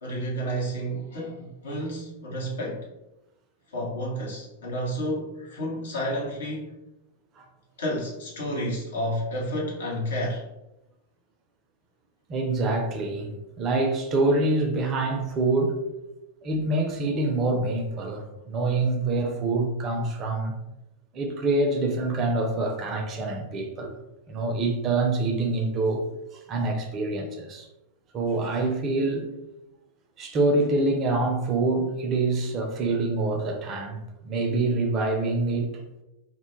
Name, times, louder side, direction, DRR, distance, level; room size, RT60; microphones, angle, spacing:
voice 1, 0.0-2.9 3.7-6.7 7.8-10.4, equal, 65° left, -3 dB, 0.8 m, -31 dB
voice 2, 12.3-13.3 13.6-15.8 16.4-20.6 21.1-24.0 24.3-26.0 26.5-27.7 28.1-29.3 30.2-35.8, right 2 dB, 30° right, 3 dB, 0.4 m, -26 dB
2.1 x 2.1 x 3.0 m, 0.94 s
figure-of-eight pair, 90°, 0 cm